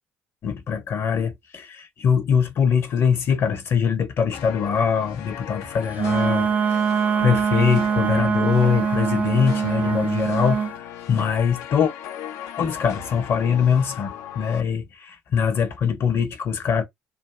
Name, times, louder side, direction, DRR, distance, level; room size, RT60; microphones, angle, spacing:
voice 1, 0.4-6.8 7.2-11.9 12.6-16.8, left 7 dB, 50° left, 0.9 m, -23 dB
sound 1, 4.3-14.6, left 10 dB, 65° left, 0.4 m, -37 dB
Wind instrument woodwind instrument, 5.9-10.7, right 6 dB, 35° right, 0.5 m, -23 dB
2.6 x 2.6 x 2.3 m
hypercardioid pair, 55°, 5 cm